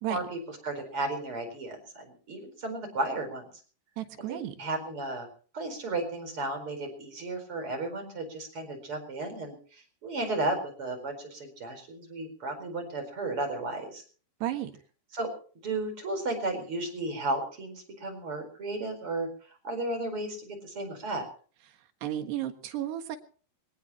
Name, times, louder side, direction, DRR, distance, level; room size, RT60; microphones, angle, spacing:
voice 1, 0.1-3.5 4.3-5.3 5.5-14.0 15.1-15.3 15.6-19.3 19.6-21.3, right 2 dB, 30° right, 5 dB, 5.2 m, -34 dB
voice 2, 4.0-4.6 14.4-14.7 22.0-23.2, right 12 dB, 85° right, 7 dB, 3.7 m, -33 dB
23.5 x 18.0 x 3.0 m, 0.41 s
omnidirectional pair, 4.7 m